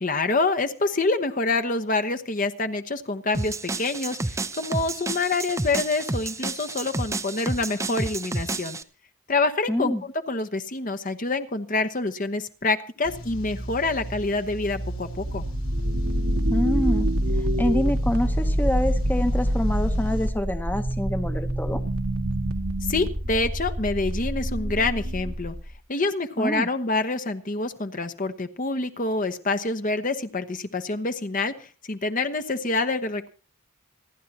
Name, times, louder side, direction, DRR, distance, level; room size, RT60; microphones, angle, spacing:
voice 1, 0.0-8.8 9.3-15.4 22.8-25.5 25.9-33.3, left 3 dB, 40° left, 8 dB, 0.9 m, -26 dB
sound 1, 3.3-8.8, right 2 dB, 15° right, 0.6 m, -30 dB
voice 2, 9.7-10.0 16.5-17.1 17.4-21.8 26.4-26.7, left 1 dB, 10° left, 8 dB, 0.9 m, -26 dB
sound 2, 13.0-20.3, right 1 dB, 75° left, 2.1 m, -35 dB
sound 3, 15.1-25.8, equal, 90° right, 2.2 m, -26 dB
27.5 x 11.0 x 2.9 m, 0.37 s
head